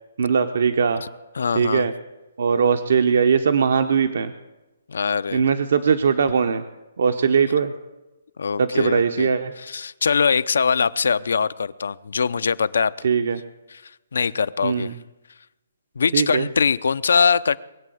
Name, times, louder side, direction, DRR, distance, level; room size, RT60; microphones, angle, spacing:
voice 1, 0.2-1.0 1.5-1.9 2.4-4.3 5.3-6.6 7.0-7.7 8.6-9.5 13.0-13.4 14.6-15.0 16.1-16.5, right 6 dB, 55° right, 8 dB, 0.9 m, -20 dB
voice 2, 1.4-1.9 4.9-5.4 8.4-9.3 9.6-12.9 13.7-13.8 14.1-14.9 16.0-17.6, left 6 dB, 70° left, 15 dB, 0.6 m, -22 dB
21.0 x 8.4 x 7.9 m, 1.0 s
hypercardioid pair, 175°, 0 cm